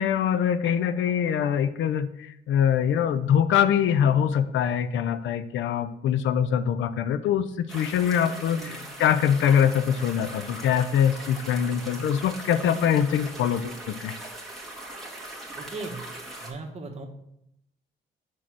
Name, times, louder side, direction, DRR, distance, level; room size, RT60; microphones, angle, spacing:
voice 1, 0.0-14.1, left 8 dB, 75° left, 13 dB, 0.5 m, -23 dB
sound 1, 7.7-16.5, right 1 dB, ahead, 1.8 m, -40 dB
voice 2, 8.4-8.8 15.5-16.0 16.4-17.1, right 3 dB, 30° right, 1 dB, 1.6 m, -38 dB
6.3 x 4.2 x 5.9 m, 0.80 s
cardioid pair, 90°, 20 cm